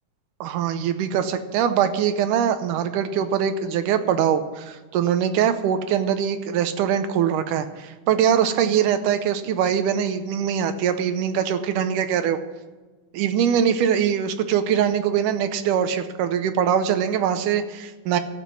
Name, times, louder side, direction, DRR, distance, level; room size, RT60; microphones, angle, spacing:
voice 1, 0.4-12.4 13.1-18.2, right 8 dB, 80° right, 9 dB, 2.3 m, -22 dB
13.0 x 7.3 x 9.7 m, 1.3 s
omnidirectional pair, 3.6 m